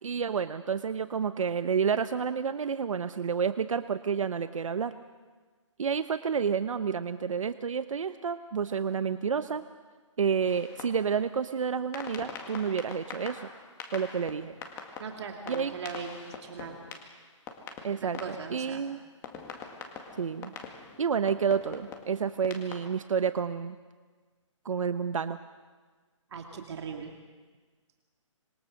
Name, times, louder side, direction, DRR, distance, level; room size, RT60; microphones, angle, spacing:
voice 1, 0.0-4.9 5.8-9.6 10.2-13.4 13.9-14.5 15.5-15.7 17.8-18.2 18.5-19.0 20.2-20.5 21.0-23.8 24.6-25.4, right 6 dB, 75° right, 11 dB, 0.9 m, -29 dB
sound 1, 10.5-11.3 11.9-18.8 19.2-22.9, left 5 dB, 15° left, 2.0 m, -44 dB
voice 2, 15.0-16.1 16.4-16.8 18.2-18.8 26.3-27.1, right 6 dB, 55° right, 3 dB, 2.4 m, -39 dB
26.0 x 22.0 x 6.5 m, 1.4 s
hypercardioid pair, 155°, 17 cm